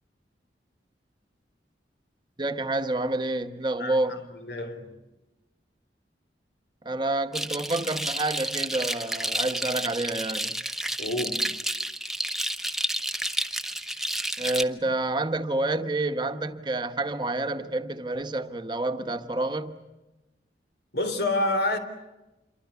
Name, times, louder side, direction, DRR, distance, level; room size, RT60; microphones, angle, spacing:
voice 1, 2.4-4.2 6.8-10.6 14.4-19.8, right 2 dB, 25° right, 1.2 m, -28 dB
voice 2, 3.8-5.0 6.9-7.0 11.0-11.5 20.9-21.8, left 2 dB, 65° left, 3.6 m, -29 dB
sound 1, 7.3-14.6, right 1 dB, ahead, 0.9 m, -30 dB
27.5 x 23.5 x 8.3 m
head